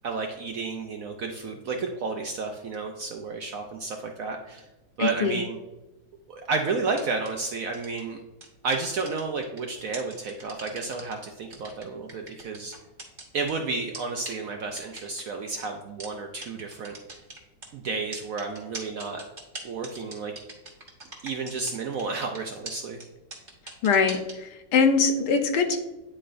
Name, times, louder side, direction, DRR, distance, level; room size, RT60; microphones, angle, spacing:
voice 1, 0.0-4.7 5.0-5.6 6.3-8.2 8.6-12.7 13.3-16.9 17.7-19.2 19.6-20.3 21.2-23.0, right 4 dB, 75° right, 3 dB, 0.8 m, -31 dB
voice 2, 5.0-5.4 23.8-25.8, left 5 dB, 70° left, 5 dB, 1.3 m, -23 dB
sound 1, 7.0-7.3 7.7-8.0 8.4-9.6 9.9-11.1 11.5-13.5 13.9-14.0 14.2-14.3 14.8-15.2 15.6-15.7 16.0-16.1 16.4-16.5 16.7-17.7 18.1-21.7 22.0-22.4 22.6-22.7 23.0-23.1 23.3-24.3, right 2 dB, 30° right, 1.3 m, -40 dB
9.8 x 4.1 x 2.5 m, 1.0 s
omnidirectional pair, 2.0 m